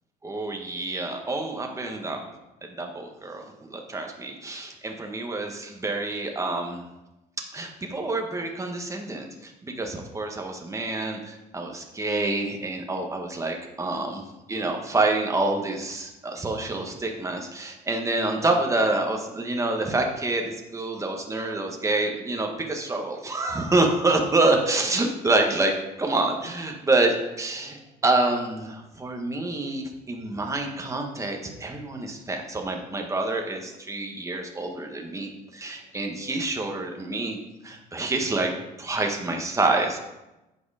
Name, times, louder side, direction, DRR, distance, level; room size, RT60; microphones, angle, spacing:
voice 1, 0.2-2.2 2.8-3.4 3.7-6.8 7.5-14.2 14.5-37.4 37.6-38.5 38.8-40.0, right 2 dB, 20° right, 2 dB, 1.4 m, -27 dB
8.7 x 5.0 x 4.9 m, 0.97 s
cardioid pair, 110°, 17 cm